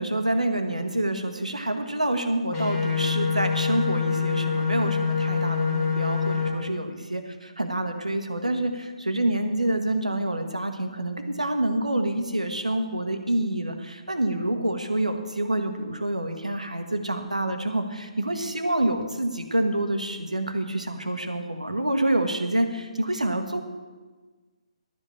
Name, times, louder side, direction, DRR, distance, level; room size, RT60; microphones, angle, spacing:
voice 1, 0.0-23.6, right 1 dB, 80° right, 7 dB, 1.2 m, -27 dB
sound 1, 2.5-6.5, left 5 dB, 20° left, 2.3 m, -25 dB
11.5 x 5.4 x 8.4 m, 1.3 s
figure-of-eight pair, 135°, 4 cm